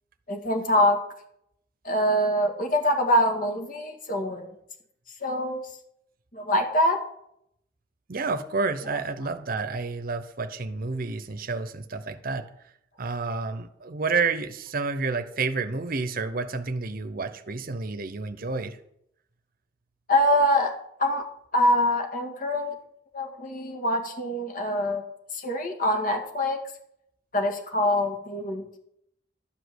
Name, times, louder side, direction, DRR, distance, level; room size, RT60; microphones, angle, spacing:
voice 1, 0.3-1.0 1.8-4.5 5.2-5.6 6.3-7.0 20.1-20.7 21.0-21.3 21.5-22.7 23.1-25.0 25.3-26.6 27.3-28.8, left 1 dB, 50° left, 3 dB, 1.9 m, -24 dB
voice 2, 8.1-12.5 13.0-18.8, right 4 dB, 55° right, 10 dB, 0.8 m, -30 dB
12.5 x 5.2 x 8.0 m, 0.74 s
head